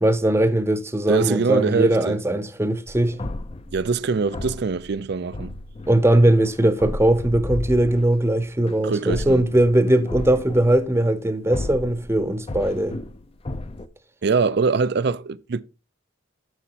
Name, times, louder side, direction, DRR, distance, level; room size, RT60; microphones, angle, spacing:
voice 1, 0.0-3.2 5.9-13.0, right 1 dB, 15° right, 0.8 m, -20 dB
voice 2, 1.1-2.2 3.7-5.5 8.8-9.4 14.2-15.6, right 4 dB, 55° right, 0.4 m, -23 dB
sound 1, 2.9-11.1 11.5-13.9, left 2 dB, 30° left, 0.5 m, -34 dB
10.0 x 7.1 x 2.9 m
head